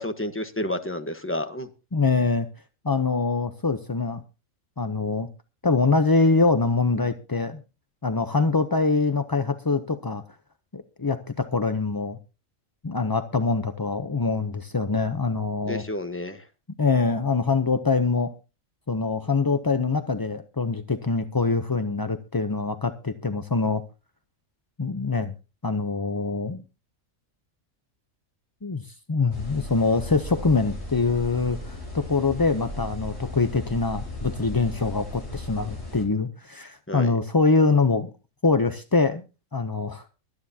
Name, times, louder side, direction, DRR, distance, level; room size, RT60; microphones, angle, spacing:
voice 1, 0.0-1.7 15.7-16.4 36.9-37.2, left 1 dB, 10° left, 8 dB, 1.1 m, -30 dB
voice 2, 1.9-2.5 2.8-4.2 4.8-5.3 5.6-7.6 8.0-10.2 10.7-12.2 12.8-15.8 16.8-18.3 18.9-23.8 24.8-25.3 25.6-26.6 28.6-38.1 38.4-39.2 39.5-40.0, left 4 dB, 25° left, 9 dB, 0.5 m, -24 dB
sound 1, 29.3-36.1, left 1 dB, 55° left, 6.7 m, -36 dB
23.5 x 9.7 x 2.8 m, 0.32 s
omnidirectional pair, 1.4 m